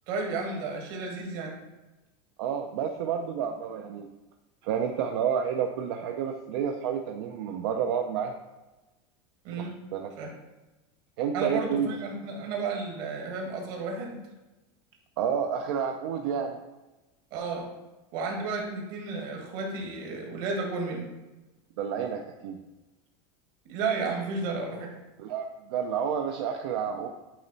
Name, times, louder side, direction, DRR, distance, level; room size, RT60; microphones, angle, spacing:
voice 1, 0.1-1.6 9.4-9.7 10.2-10.3 11.3-14.2 17.3-17.7 18.1-21.1 23.7-24.9, right 4 dB, 55° right, 1 dB, 1.6 m, -32 dB
voice 2, 2.4-4.1 4.6-8.3 9.6-9.7 9.9-10.1 11.2-12.0 15.2-16.6 21.8-22.6 25.2-27.1, right 7 dB, 80° right, 3 dB, 0.6 m, -30 dB
8.7 x 3.0 x 4.0 m, 1.1 s
supercardioid pair, 160°, 14 cm